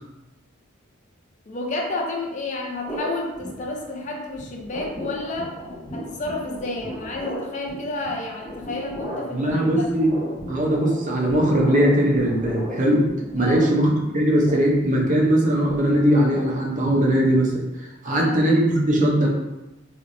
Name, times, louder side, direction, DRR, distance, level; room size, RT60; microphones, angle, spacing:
voice 1, 1.5-5.5 5.9-9.9 13.4-13.7 18.1-18.4, left 2 dB, 35° left, -1 dB, 0.5 m, -30 dB
sound 1, 2.8-4.1 4.4-17.5, equal, 15° left, 1.4 m, -35 dB
voice 2, 9.3-10.1 10.5-13.0 13.3-17.6 18.0-19.3, right 1 dB, 40° right, -1 dB, 0.6 m, -20 dB
3.3 x 2.9 x 2.5 m, 0.97 s
head